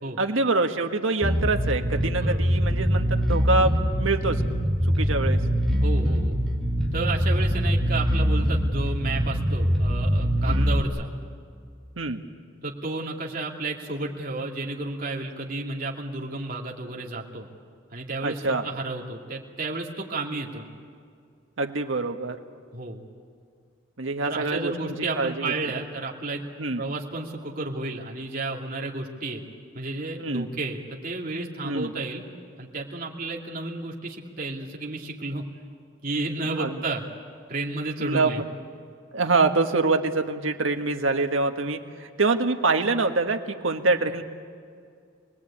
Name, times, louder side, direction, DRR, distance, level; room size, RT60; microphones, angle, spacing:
voice 1, 0.2-4.4 4.8-5.4 10.4-10.7 12.0-12.2 18.2-18.6 21.6-22.4 24.0-24.7 25.2-25.5 26.6-26.8 30.2-30.5 31.6-31.9 36.6-36.8 38.0-38.3 39.1-44.2, right 3 dB, 80° right, 5 dB, 1.6 m, -25 dB
Bass guitar, 1.2-10.8, equal, ahead, 2.5 m, -23 dB
voice 2, 5.8-6.4 6.9-11.1 12.6-17.5 17.9-20.7 22.7-23.0 24.2-26.4 26.8-29.4 29.7-32.2 32.6-35.4 36.0-37.0 37.5-38.4, right 2 dB, 45° right, -2 dB, 2.6 m, -32 dB
28.0 x 20.5 x 8.6 m, 2.2 s
head